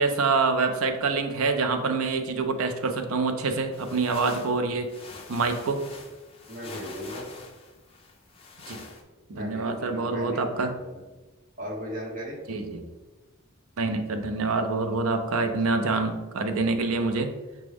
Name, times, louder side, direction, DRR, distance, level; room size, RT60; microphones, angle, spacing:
voice 1, 0.0-4.9 5.3-5.8 8.7-8.8 9.3-10.7 12.5-12.9 13.8-17.3, right 3 dB, 80° right, 6 dB, 0.5 m, -26 dB
sound 1, 3.7-9.0, left 3 dB, 25° left, 0.4 m, -45 dB
voice 2, 6.5-7.3 9.3-11.0 11.6-12.4 15.6-15.9, equal, 40° right, -3 dB, 1.1 m, -37 dB
6.0 x 2.2 x 3.4 m, 1.2 s
head